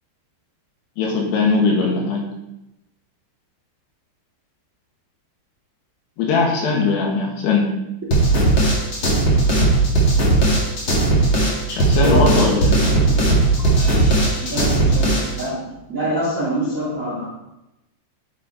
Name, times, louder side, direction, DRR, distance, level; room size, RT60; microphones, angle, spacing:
voice 1, 1.0-2.3 6.2-7.7 11.7-12.7, left 4 dB, 70° left, -1 dB, 3.6 m, -20 dB
sound 1, 8.1-15.4, right 2 dB, 45° left, 1.6 m, -17 dB
voice 2, 12.0-12.4 14.4-15.6 15.9-17.3, right 1 dB, 75° right, -4 dB, 0.7 m, -24 dB
8.6 x 7.8 x 4.2 m, 0.92 s
omnidirectional pair, 5.2 m